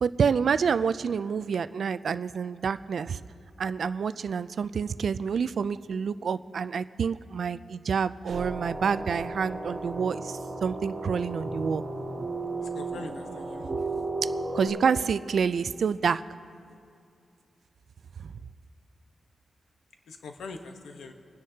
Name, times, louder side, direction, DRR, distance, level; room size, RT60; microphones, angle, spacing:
voice 1, 0.0-3.2 3.6-11.8 14.5-16.2 18.2-18.3, right 6 dB, 60° right, 14 dB, 0.3 m, -28 dB
sound 1, 8.3-14.7, right 2 dB, 35° right, 2.5 m, -34 dB
voice 2, 12.6-13.7 20.1-21.1, left 4 dB, 80° left, 5 dB, 1.0 m, -42 dB
26.5 x 9.9 x 2.8 m, 2.4 s
wide cardioid pair, 125°, 0 cm